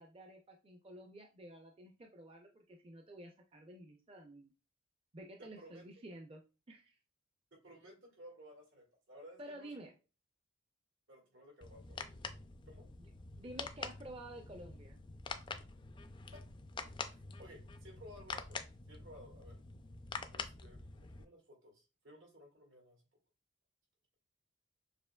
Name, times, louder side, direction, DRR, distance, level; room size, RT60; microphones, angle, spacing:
voice 1, 0.0-4.5 5.1-6.4 6.7-7.0 9.4-9.9 13.0-13.1 13.4-15.0, right 1 dB, 30° right, 3 dB, 0.5 m, -51 dB
voice 2, 5.4-5.9 7.5-9.8 11.1-12.1 12.7-12.9 16.3-16.4 17.1-19.6 20.3-23.0, equal, 85° right, 0 dB, 2.0 m, -57 dB
sound 1, 11.6-21.2, left 4 dB, 25° left, 0.3 m, -46 dB
6.8 x 2.9 x 2.2 m, 0.30 s
head